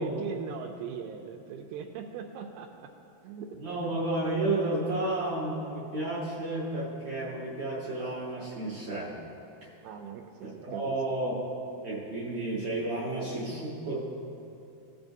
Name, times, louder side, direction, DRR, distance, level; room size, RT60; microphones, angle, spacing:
voice 1, 0.0-2.9 3.2-3.8 9.8-10.9, right 7 dB, 85° right, 2 dB, 2.5 m, -40 dB
voice 2, 3.5-9.1 10.4-11.3 11.8-14.0, right 2 dB, 65° right, -6 dB, 1.5 m, -32 dB
17.5 x 5.9 x 2.6 m, 2.7 s
omnidirectional pair, 4.5 m